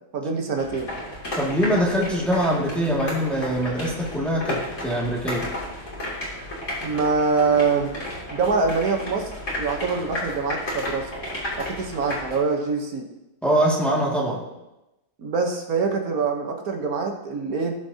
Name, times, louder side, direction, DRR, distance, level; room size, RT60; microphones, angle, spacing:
voice 1, 0.1-0.9 6.8-8.0 8.3-9.3 9.6-11.1 11.6-13.1 15.2-17.8, right 4 dB, 80° right, 3 dB, 1.6 m, -24 dB
sound 1, 0.6-12.4, left 1 dB, 55° left, 3.1 m, -33 dB
voice 2, 1.4-5.5 13.4-14.4, equal, ahead, -5 dB, 2.0 m, -23 dB
17.0 x 7.3 x 2.8 m, 0.98 s
omnidirectional pair, 1.5 m